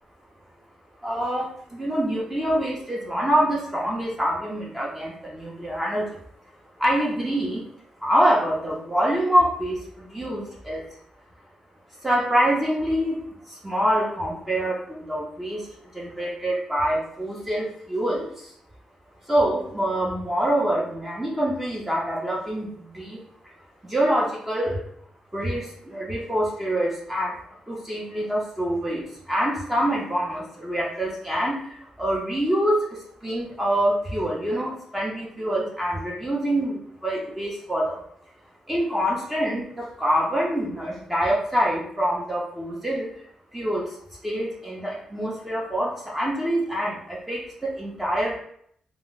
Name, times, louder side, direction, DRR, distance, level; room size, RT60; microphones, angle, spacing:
voice 1, 1.0-6.2 6.8-7.7 8.0-10.8 12.0-13.2 13.5-15.7 15.9-18.5 19.3-23.2 23.8-24.9 25.3-27.4 27.7-38.0 38.7-43.1 43.5-44.0 44.2-48.4, equal, 10° right, -4 dB, 0.6 m, -25 dB
2.1 x 2.0 x 3.7 m, 0.67 s
wide cardioid pair, 120°, 2 cm